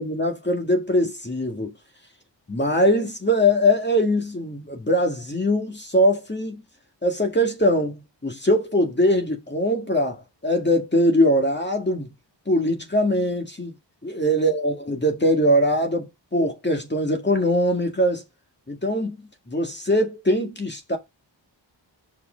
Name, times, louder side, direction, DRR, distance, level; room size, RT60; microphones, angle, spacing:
voice 1, 0.0-1.7 2.5-6.6 7.0-12.1 12.5-13.7 14.0-18.2 18.7-19.2 19.5-21.0, equal, 25° left, 2.0 m, -22 dB
5.7 x 5.2 x 5.1 m
wide cardioid pair, 65°, 44 cm